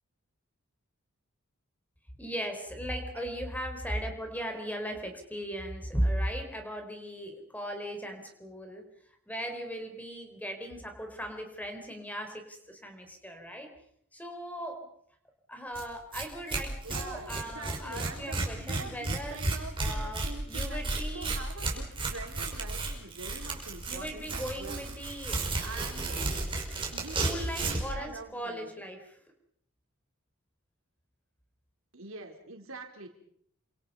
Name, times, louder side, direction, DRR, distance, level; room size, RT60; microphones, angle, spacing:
voice 1, 2.2-8.8 9.3-13.7 14.1-14.9 15.5-19.4 19.8-21.3 23.9-25.4 27.2-29.2, equal, 5° left, 5 dB, 4.0 m, -37 dB
Tearing, 15.8-15.9 16.1-16.2 16.5-27.9, right 2 dB, 25° right, 5.7 m, -33 dB
voice 2, 16.8-26.5 26.9-28.7 31.9-33.1, right 3 dB, 65° right, 4 dB, 4.1 m, -45 dB
29.5 x 26.5 x 5.6 m, 0.69 s
head